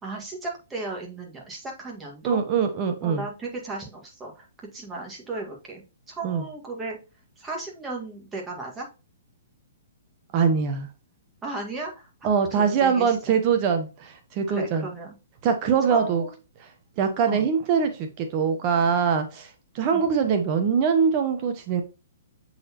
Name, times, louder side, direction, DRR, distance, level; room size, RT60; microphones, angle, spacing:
voice 1, 0.0-2.4 3.0-5.8 6.1-7.0 7.4-8.9 11.4-13.2 14.5-15.1 15.9-16.3 17.3-17.4 19.9-20.1, right 3 dB, 15° right, 1.9 m, -35 dB
voice 2, 2.2-3.2 6.2-6.5 10.3-10.9 12.2-14.9 15.4-16.2 17.0-19.5 19.7-21.8, right 6 dB, 35° right, 1.0 m, -23 dB
7.7 x 4.1 x 3.0 m
hypercardioid pair, 140°, 0 cm